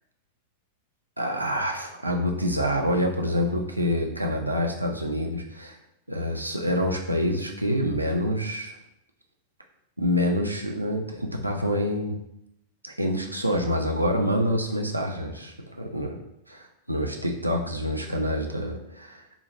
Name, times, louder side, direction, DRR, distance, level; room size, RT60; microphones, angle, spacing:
voice 1, 1.2-5.8 6.1-8.7 10.0-12.2 12.8-16.2 16.5-19.2, equal, 85° right, 2 dB, 0.3 m, -27 dB
3.7 x 2.0 x 2.9 m, 0.81 s
figure-of-eight pair, 90°, 0 cm